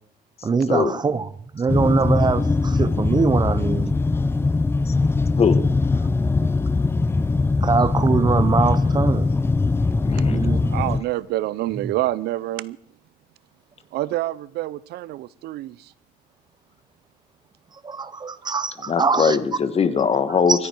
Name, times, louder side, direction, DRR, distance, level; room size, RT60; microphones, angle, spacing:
voice 1, 0.4-1.3 1.5-3.9 7.6-9.3 10.2-10.7 17.8-19.4 20.5-20.6, right 5 dB, 25° right, 0.7 m, -22 dB
sound 1, 1.7-11.0, left 3 dB, 15° left, 0.5 m, -21 dB
voice 2, 10.0-10.4 18.9-20.7, left 6 dB, 35° left, 1.4 m, -21 dB
voice 3, 10.7-12.8 13.9-15.9, right 15 dB, 75° right, 0.5 m, -27 dB
24.5 x 10.0 x 4.5 m
cardioid pair, 110°, 17 cm